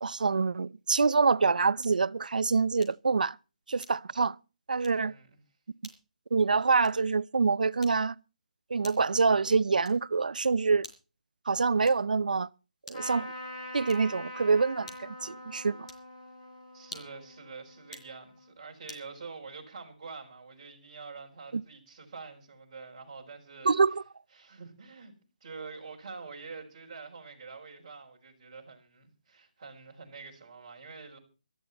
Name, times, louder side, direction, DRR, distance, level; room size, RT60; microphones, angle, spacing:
voice 1, 0.0-3.4 3.7-4.4 4.7-5.1 6.3-8.2 8.7-10.9 11.5-12.5 12.9-13.3 13.7-15.9 21.5-21.6 23.6-24.0, right 4 dB, 75° right, 0.6 m, -26 dB
sound 1, 1.8-2.1 2.8-3.1 3.8-4.2 4.8-5.1 5.8-6.1 6.8-7.1 7.8-8.2 8.8-9.2 9.8-10.2 10.8-11.2 11.8-12.2 12.8-13.2 13.8-14.2 14.8-15.2 15.8-16.1 16.8-17.3 17.8-18.1 18.9-19.1, left 2 dB, 50° left, 4.8 m, -50 dB
voice 2, 4.9-5.4 16.7-23.7 24.3-25.1 25.4-31.2, right 4 dB, 25° right, 4.8 m, -46 dB
Trumpet, 12.9-18.4, left 1 dB, 25° left, 7.5 m, -44 dB
18.5 x 13.5 x 4.3 m
hypercardioid pair, 180°, 5 cm